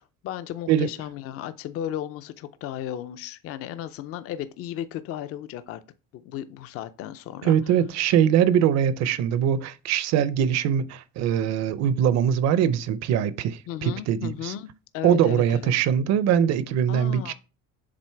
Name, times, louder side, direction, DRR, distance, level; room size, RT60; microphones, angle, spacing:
voice 1, 0.2-5.8 6.1-7.5 13.7-15.6 16.9-17.3, left 11 dB, 50° left, 0.5 m, -35 dB
voice 2, 7.4-14.5 15.0-17.3, right 9 dB, 60° right, 0.6 m, -22 dB
7.5 x 3.8 x 4.5 m
cardioid pair, 170°, 31 cm